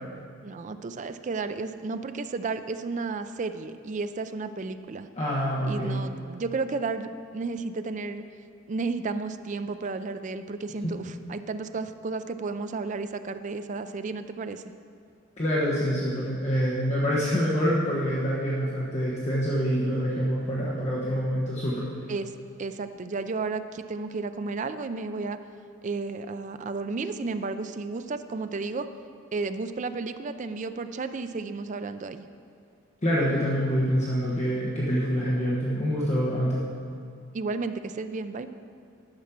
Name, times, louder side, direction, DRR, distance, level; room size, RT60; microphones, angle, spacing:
voice 1, 0.4-5.1 5.6-8.2 8.7-14.6 22.1-22.3 22.6-25.4 25.8-28.9 29.3-32.2 37.3-38.5, right 3 dB, 35° right, 10 dB, 0.4 m, -32 dB
voice 2, 5.2-6.0 10.8-10.9 15.4-21.9 33.0-36.6, equal, 35° left, -6 dB, 1.2 m, -26 dB
10.5 x 6.2 x 5.9 m, 2.3 s
head